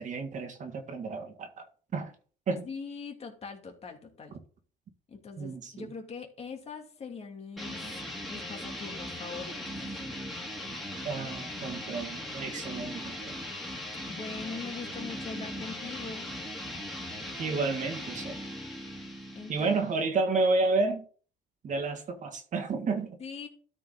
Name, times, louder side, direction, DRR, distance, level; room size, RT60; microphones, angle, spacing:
voice 1, 0.0-1.6 1.9-2.1 2.5-2.7 5.4-5.9 11.0-13.3 17.4-18.4 19.5-21.0 21.6-23.2, right 3 dB, 50° right, 1.7 m, -31 dB
voice 2, 2.5-4.4 5.1-7.8 8.3-10.0 14.1-16.4 19.3-19.9 23.2-23.5, left 5 dB, 35° left, 2.4 m, -42 dB
sound 1, 7.6-20.1, left 1 dB, ahead, 2.5 m, -39 dB
13.0 x 4.7 x 3.7 m
cardioid pair, 110°, 17 cm